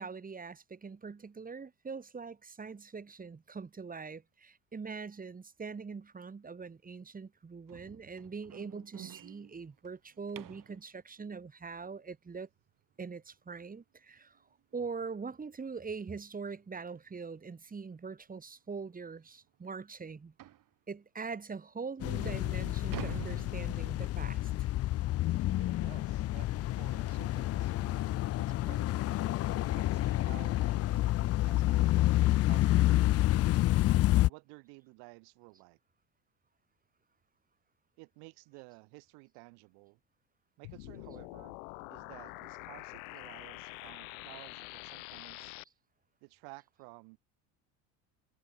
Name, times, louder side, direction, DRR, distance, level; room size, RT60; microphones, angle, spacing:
voice 1, 0.0-12.5 13.0-14.4 14.7-20.3 20.9-24.7, right 5 dB, 20° right, 2.5 m, -43 dB
sound 1, 7.7-10.8 13.6-13.7 14.2-14.4 14.7-14.8 15.3-15.4 16.5-16.6 17.0-17.2 17.8-17.9 18.3-18.4 18.9-19.0 20.4-20.7 21.4-21.5 22.0-24.3, right 12 dB, 50° right, 5.4 m, -48 dB
sound 2, 22.0-34.3, left 15 dB, 40° left, 0.4 m, -29 dB
voice 2, 25.5-28.0 28.4-29.1 29.6-32.1 32.5-33.3 34.3-35.8 38.0-40.0 40.6-41.6 41.9-45.6 46.2-47.2, right 32 dB, 75° right, 3.7 m, -54 dB
sound 3, 40.6-45.6, left 29 dB, 85° left, 3.4 m, -46 dB
supercardioid pair, 100°, 41 cm